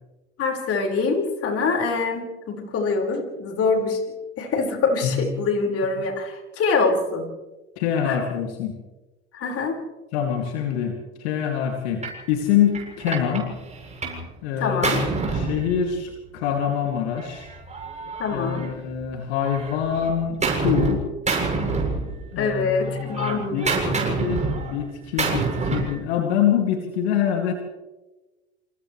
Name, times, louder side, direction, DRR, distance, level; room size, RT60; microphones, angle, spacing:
voice 1, 0.4-4.0 4.4-7.3 8.0-8.2 9.3-9.8 14.6-15.0 18.2-18.7 22.4-24.1, left 4 dB, 45° left, 2 dB, 5.4 m, -24 dB
voice 2, 7.8-8.8 10.1-13.5 14.4-17.5 18.3-21.1 22.3-23.7 24.0-27.5, left 8 dB, 70° left, 2 dB, 2.7 m, -25 dB
Gunshot gunfire, 12.0-12.2 12.7-14.3 14.5-16.2 17.2-19.0 19.4-21.0 21.3-22.5 22.8-26.0, right 4 dB, 20° right, 7.7 m, -27 dB
28.0 x 27.5 x 3.3 m, 1.1 s
hypercardioid pair, 80°, 33 cm